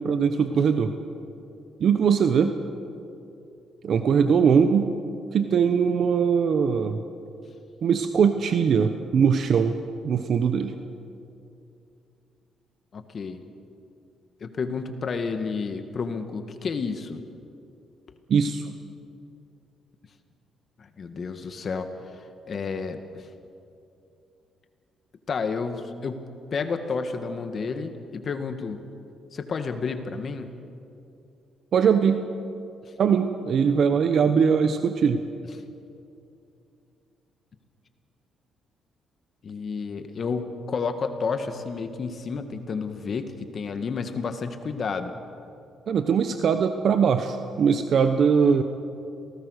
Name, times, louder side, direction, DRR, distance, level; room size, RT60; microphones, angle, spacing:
voice 1, 0.0-0.9 1.8-2.6 3.8-4.9 5.3-7.0 7.8-9.8 10.0-10.7 18.3-18.7 31.7-32.2 33.0-35.2 45.9-48.6, right 6 dB, 60° right, 8 dB, 1.0 m, -21 dB
voice 2, 12.9-13.4 14.4-17.2 20.8-21.9 22.5-23.2 25.3-26.2 26.5-28.8 29.3-30.5 39.4-45.1, left 5 dB, 45° left, 7 dB, 1.8 m, -31 dB
27.5 x 18.5 x 6.5 m, 2.6 s
cardioid pair, 90°, 0 cm